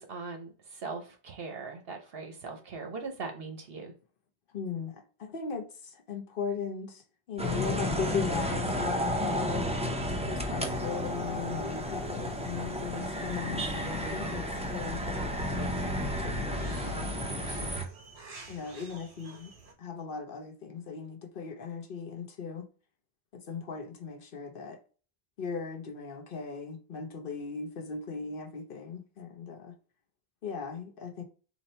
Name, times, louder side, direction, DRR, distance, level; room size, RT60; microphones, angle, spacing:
voice 1, 0.0-3.9, right 4 dB, 65° right, 1.0 m, -40 dB
voice 2, 4.5-7.0 7.3-9.6 10.3-17.8 18.5-19.5 19.8-22.7 23.3-24.8 25.4-29.8 30.4-31.2, left 5 dB, 60° left, 0.9 m, -38 dB
sound 1, 7.4-17.8, equal, 10° right, 0.5 m, -32 dB
sound 2, 10.6-19.7, right 3 dB, 35° right, 1.0 m, -52 dB
4.0 x 2.7 x 4.3 m
omnidirectional pair, 1.1 m